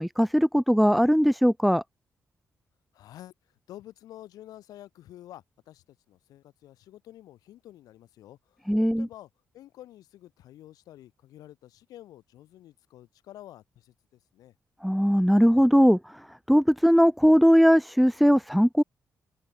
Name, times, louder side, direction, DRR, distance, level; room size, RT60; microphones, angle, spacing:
voice 1, 0.0-1.8 8.7-9.1 14.8-16.0 16.5-18.8, equal, ahead, 0.5 m, -20 dB
voice 2, 2.9-3.3 3.7-9.3 9.5-14.5, left 13 dB, 85° left, 3.5 m, -49 dB
open air
supercardioid pair, 55°, 6 cm